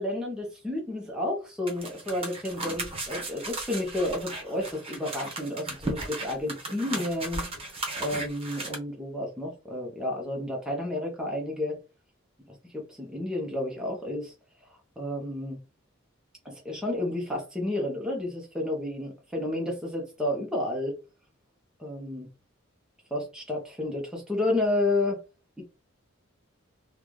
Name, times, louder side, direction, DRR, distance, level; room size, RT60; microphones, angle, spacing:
voice 1, 0.0-11.8 12.5-14.3 15.0-15.6 16.4-20.9 21.8-22.3 23.1-25.2, left 1 dB, 5° right, -1 dB, 0.8 m, -31 dB
sound 1, 1.7-8.7, right 2 dB, 25° right, 1.0 m, -36 dB
3.8 x 2.3 x 3.2 m, 0.29 s
head